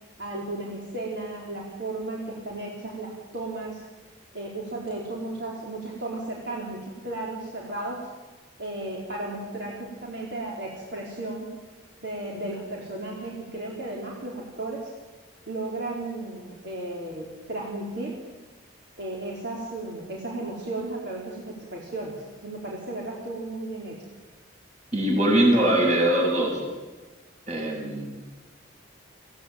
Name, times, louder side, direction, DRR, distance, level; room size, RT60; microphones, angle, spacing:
voice 1, 0.2-3.8 4.3-8.1 8.6-11.5 12.0-14.9 15.5-18.2 19.0-24.0, right 2 dB, 55° right, -3 dB, 4.1 m, -34 dB
voice 2, 24.9-26.6 27.5-28.1, right 1 dB, 35° right, 0 dB, 7.8 m, -21 dB
25.5 x 17.0 x 9.2 m, 1.3 s
head